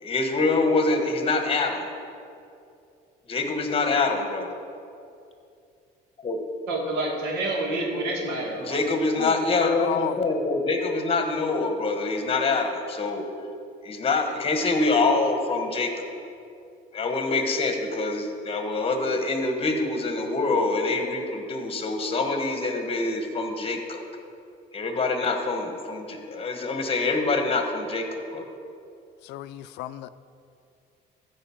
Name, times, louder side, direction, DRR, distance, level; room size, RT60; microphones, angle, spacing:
voice 1, 0.0-1.9 3.3-4.5 6.2-6.5 8.5-13.2 13.8-16.1 16.9-24.0 24.7-28.1 28.3-28.4, left 3 dB, 35° left, 5 dB, 1.4 m, -25 dB
voice 2, 6.7-8.8, right 1 dB, 80° right, 1 dB, 2.1 m, -28 dB
voice 3, 9.2-10.2 29.2-30.1, left 13 dB, 90° left, 14 dB, 0.4 m, -33 dB
13.0 x 5.3 x 7.2 m, 2.5 s
cardioid pair, 110°, 17 cm